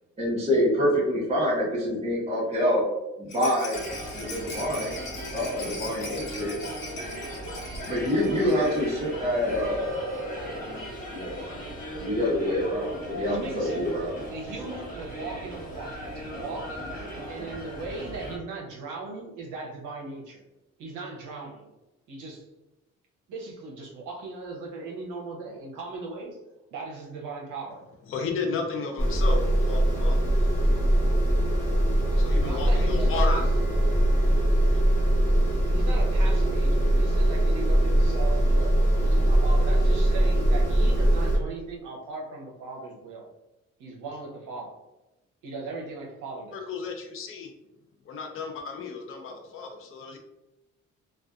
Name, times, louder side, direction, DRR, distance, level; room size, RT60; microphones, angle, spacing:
voice 1, 0.2-2.9 3.2-3.8 4.2-5.0 5.3-6.6 7.9-11.4 12.0-14.2, equal, 20° right, -7 dB, 0.9 m, -26 dB
Rattle, 3.3-9.0 9.2-9.3 9.6-9.7, left 2 dB, 85° left, 1.3 m, -41 dB
sound 1, 3.7-18.4, equal, 25° left, 1.0 m, -38 dB
voice 2, 13.2-16.9 17.3-20.4 20.8-21.7 22.1-22.5 23.3-26.4 26.7-27.9 32.3-33.7 35.7-43.3 43.8-44.8 45.4-46.6, right 3 dB, 80° right, -1 dB, 0.7 m, -38 dB
voice 3, 28.1-30.2 31.3-33.4 34.7-34.9 46.5-47.5 48.1-50.2, left 4 dB, 45° left, 3 dB, 0.5 m, -34 dB
sound 2, 29.0-41.4, right 1 dB, 10° left, 1.2 m, -22 dB
2.5 x 2.3 x 2.3 m, 0.97 s
cardioid pair, 90°, 30 cm